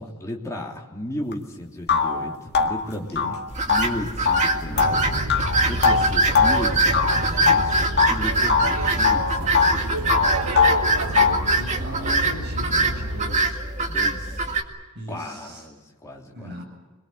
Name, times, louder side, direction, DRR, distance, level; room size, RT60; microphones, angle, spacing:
voice 1, 0.0-3.3 3.6-5.1 5.6-10.0 13.8-14.5 15.1-16.6, left 1 dB, 15° left, -1 dB, 3.2 m, -34 dB
sound 1, 1.3-1.4 1.9-8.2 8.5-9.8 10.1-11.5, left 5 dB, 50° left, 1.8 m, -21 dB
voice 2, 2.8-3.4 11.0-13.6 14.9-15.7 16.3-16.6, equal, 50° right, 1 dB, 7.6 m, -38 dB
sound 2, 3.5-14.6, right 2 dB, 30° right, 2.1 m, -24 dB
Boat Water vehicle, 4.6-13.4, right 1 dB, 85° right, 1.9 m, -30 dB
26.5 x 22.0 x 8.0 m, 1.2 s
head